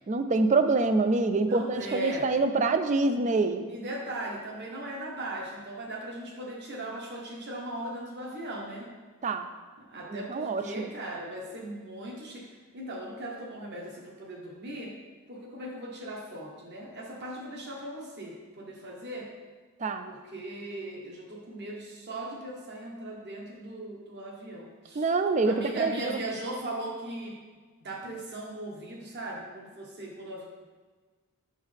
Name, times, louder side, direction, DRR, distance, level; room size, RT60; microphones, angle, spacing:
voice 1, 0.1-3.6 9.2-9.5 10.1-10.9 19.8-20.0 25.0-26.2, right 3 dB, 35° right, 9 dB, 0.4 m, -26 dB
voice 2, 1.4-2.3 3.7-8.9 9.9-12.5 12.7-14.9 15.3-19.3 20.1-25.1 25.4-27.4 27.8-30.4, right 1 dB, 50° right, -1 dB, 1.2 m, -38 dB
6.4 x 6.3 x 3.4 m, 1.5 s
head